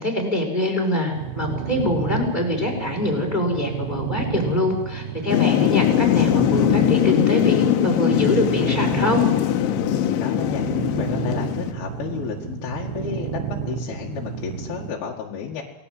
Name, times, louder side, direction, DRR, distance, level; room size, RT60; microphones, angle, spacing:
voice 1, 0.0-9.2, left 1 dB, 10° left, 0 dB, 5.6 m, -24 dB
sound 1, 1.1-14.9, right 8 dB, 65° right, 3.6 m, -31 dB
Thunder / Rain, 5.3-11.7, left 13 dB, 80° left, 3.4 m, -21 dB
voice 2, 9.9-10.6 11.0-15.6, left 7 dB, 60° left, -2 dB, 3.4 m, -32 dB
28.5 x 19.0 x 7.8 m, 1.0 s
omnidirectional pair, 5.5 m